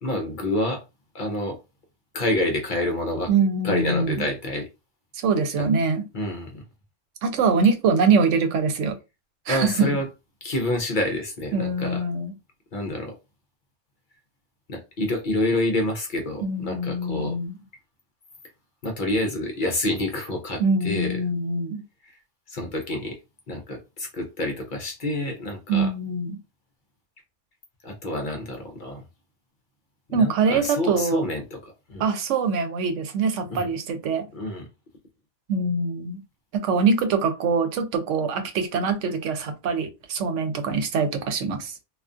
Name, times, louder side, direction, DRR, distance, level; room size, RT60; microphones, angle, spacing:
voice 1, 0.0-0.8 1.1-1.6 2.1-3.3 3.6-4.7 5.5-5.7 6.1-6.6 9.5-10.1 10.4-12.0 12.7-13.1 14.7-17.4 18.8-21.2 22.0-22.2 22.5-23.2 23.5-25.9 27.8-29.0 30.1-31.6 31.9-32.0 33.5-33.7 34.3-34.6, left 1 dB, 55° left, 0.6 m, -28 dB
voice 2, 3.3-4.3 5.2-6.0 7.2-9.0 9.5-9.9 11.5-12.3 16.4-17.5 20.6-21.8 25.7-26.4 30.1-31.2 32.0-34.3 35.5-36.2 36.5-41.7, right 4 dB, 85° right, 0.9 m, -23 dB
2.4 x 2.3 x 2.5 m
omnidirectional pair, 1.2 m